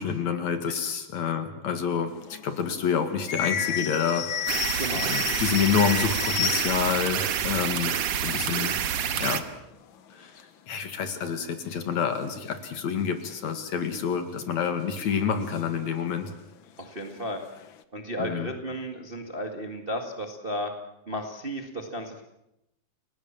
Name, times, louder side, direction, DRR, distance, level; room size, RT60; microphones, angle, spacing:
voice 1, 0.0-4.7 5.1-7.9 8.2-8.7 9.2-9.4 10.2-10.3 10.7-16.3 18.2-18.5, left 7 dB, 60° left, 8 dB, 3.0 m, -28 dB
voice 2, 0.7-1.0 4.8-5.1 16.8-17.4 17.9-20.7 21.1-22.2, equal, 20° right, 5 dB, 1.5 m, -34 dB
sound 1, 2.1-7.1 7.4-7.5 7.7-9.1 9.5-9.6 9.9-10.4 11.2-11.3 11.8-12.7 13.2-13.3 14.4-14.6 15.0-16.4 16.8-17.8, left 9 dB, 80° left, 1.1 m, -33 dB
sound 2, 4.5-9.4, right 8 dB, 55° right, 2.2 m, -28 dB
29.5 x 18.5 x 7.5 m, 0.85 s
omnidirectional pair, 3.8 m